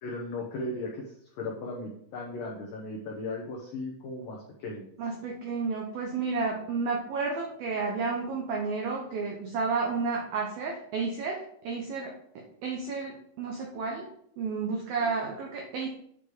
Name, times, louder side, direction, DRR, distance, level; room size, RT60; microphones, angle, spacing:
voice 1, 0.0-4.9 15.0-15.3, left 2 dB, 80° left, -2 dB, 2.0 m, -37 dB
voice 2, 5.0-14.1 14.4-15.9, right 4 dB, 85° right, 0 dB, 2.1 m, -31 dB
8.7 x 4.9 x 5.0 m, 0.69 s
omnidirectional pair, 5.8 m